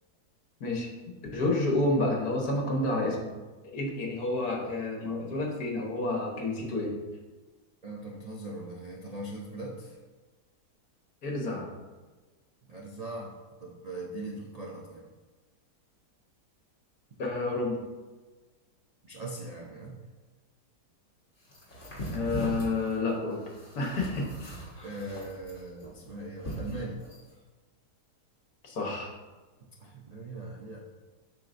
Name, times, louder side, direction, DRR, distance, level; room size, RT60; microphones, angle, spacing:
voice 1, 1.3-3.3 3.6-6.9 11.2-11.7 17.2-17.8 22.1-23.4 23.8-24.5 28.6-29.1, left 2 dB, 65° left, -1 dB, 1.7 m, -29 dB
voice 2, 7.8-10.0 12.7-13.3 13.6-15.1 19.0-20.0 21.8-22.1 24.8-27.0 29.8-30.8, right 2 dB, 70° right, -2 dB, 0.3 m, -40 dB
sound 1, 21.5-27.3, right 1 dB, 45° left, 1.9 m, -39 dB
7.6 x 5.8 x 2.6 m, 1.3 s
omnidirectional pair, 1.8 m